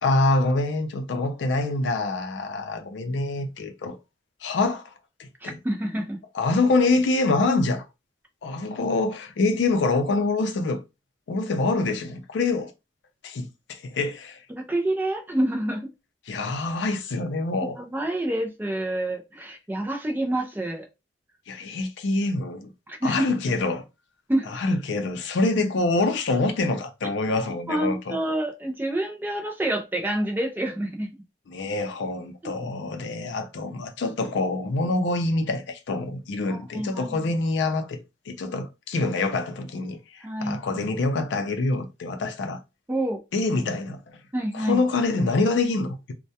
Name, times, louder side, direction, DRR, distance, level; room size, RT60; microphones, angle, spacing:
voice 1, 0.0-4.0 4.4-4.9 5.2-5.6 6.3-7.9 8.4-10.8 11.3-12.7 13.2-14.4 16.3-17.8 21.5-22.7 23.0-23.8 24.5-28.2 31.5-38.0 38.3-40.0 40.4-42.6 43.3-44.0 44.5-46.1, left 3 dB, 70° left, 0.4 m, -25 dB
voice 2, 5.4-6.2 14.5-15.9 17.6-20.9 22.9-23.3 24.3-24.6 27.7-31.1 32.4-32.9 36.5-37.2 40.2-40.8 42.9-43.2 44.3-44.8, right 1 dB, 10° right, 0.4 m, -28 dB
2.2 x 2.1 x 2.7 m
head